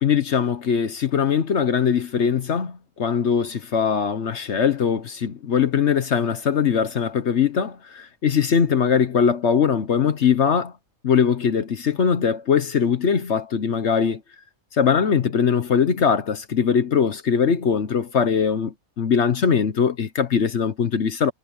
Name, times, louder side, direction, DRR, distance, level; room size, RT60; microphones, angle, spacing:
voice 1, 0.0-10.7 11.0-14.2 14.7-21.3, left 7 dB, 55° left, 1.2 m, -21 dB
omnidirectional pair, 1.4 m